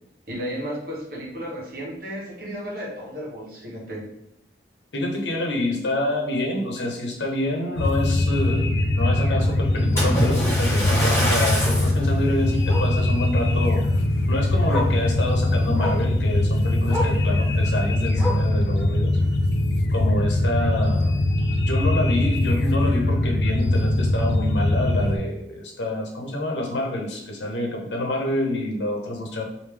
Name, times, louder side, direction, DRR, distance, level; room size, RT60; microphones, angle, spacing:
voice 1, 0.3-4.1, equal, 55° right, -4 dB, 1.2 m, -33 dB
voice 2, 4.9-13.8 14.3-19.2 19.9-21.1 21.6-29.4, left 1 dB, 85° left, 1 dB, 0.9 m, -27 dB
Bark, 5.2-5.3 5.7-5.8 6.2-6.3 6.6-6.7 8.1-8.2 10.7-10.8 11.6-11.9 12.7-13.0 14.2-14.3 14.7-15.0 15.7-16.1 16.9-17.2 18.2-18.6 19.6-19.7, left 2 dB, 20° right, 0.9 m, -30 dB
sound 1, 7.8-25.2, left 1 dB, 70° left, 0.3 m, -22 dB
Splash splatter, 10.0-12.0 12.7-12.9 13.5-13.6, equal, 15° left, 1.1 m, -25 dB
3.4 x 2.7 x 3.3 m, 0.83 s
head